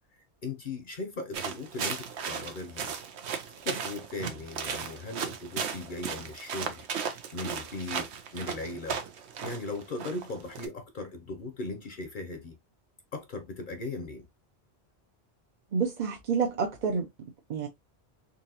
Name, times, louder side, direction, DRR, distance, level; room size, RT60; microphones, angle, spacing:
voice 1, 0.4-2.9 3.6-6.9 7.3-9.0 9.4-12.5 13.1-14.3, left 2 dB, 55° left, 0.8 m, -38 dB
sound 1, 1.3-10.7, right 7 dB, 85° right, 1.0 m, -36 dB
voice 2, 15.7-17.1 17.5-17.7, right 5 dB, 50° right, 0.7 m, -28 dB
3.9 x 2.9 x 2.8 m
omnidirectional pair, 1.1 m